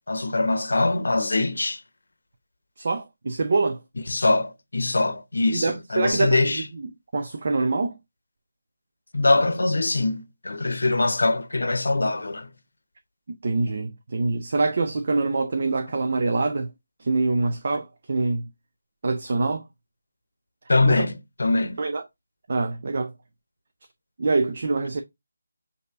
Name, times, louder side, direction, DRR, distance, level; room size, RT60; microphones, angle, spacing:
voice 1, 0.1-1.8 4.1-6.6 9.1-12.5 20.7-21.8, left 2 dB, 60° left, 0.8 m, -23 dB
voice 2, 2.8-3.8 5.5-8.0 13.3-16.7 17.0-18.5 19.0-19.7 20.8-21.1 21.8-22.0 22.5-23.1 24.2-25.0, right 3 dB, 40° right, 0.5 m, -25 dB
7.9 x 2.8 x 2.4 m
figure-of-eight pair, 155°, 0 cm